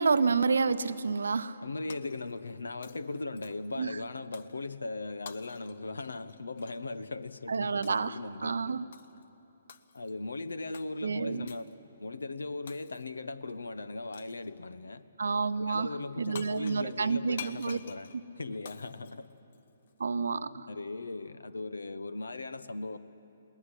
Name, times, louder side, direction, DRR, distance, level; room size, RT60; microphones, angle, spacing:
voice 1, 0.0-1.6 3.8-3.9 7.5-8.1 8.4-8.8 11.0-11.5 15.2-15.9 16.2-17.8 20.0-20.7, right 4 dB, 70° right, 14 dB, 0.8 m, -29 dB
voice 2, 1.6-8.8 9.9-11.6 12.0-15.0 15.6-19.3 20.4-23.0, left 3 dB, 75° left, 15 dB, 1.0 m, -38 dB
Shatter, 1.9-2.6 2.8-3.8 4.3-4.6 5.2-6.8 7.8-8.2 8.9-9.2 9.7-10.2 10.7-10.9 11.5-11.7 12.7-13.2 14.1-14.5 16.0-16.1 16.3-19.9, left 7 dB, 55° left, 1.0 m, -49 dB
21.0 x 18.0 x 10.0 m, 2.9 s
figure-of-eight pair, 130°, 0 cm